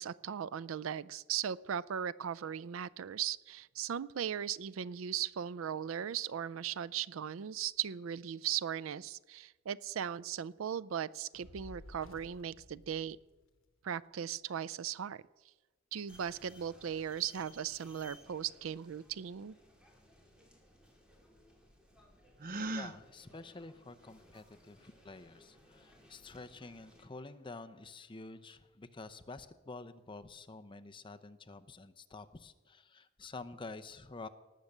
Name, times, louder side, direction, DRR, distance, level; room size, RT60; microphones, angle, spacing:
voice 1, 0.0-13.2 13.8-15.2 15.9-19.5, right 9 dB, 75° right, 20 dB, 0.4 m, -38 dB
Fire, 11.3-13.8, left 1 dB, 80° left, 1.2 m, -54 dB
sound 1, 16.1-27.1, left 1 dB, 5° right, 2.4 m, -61 dB
Gasp, 22.4-23.0, right 2 dB, 45° right, 0.7 m, -37 dB
voice 2, 22.7-34.3, left 3 dB, 25° left, 9 dB, 0.7 m, -49 dB
18.5 x 7.3 x 6.6 m, 1.2 s
head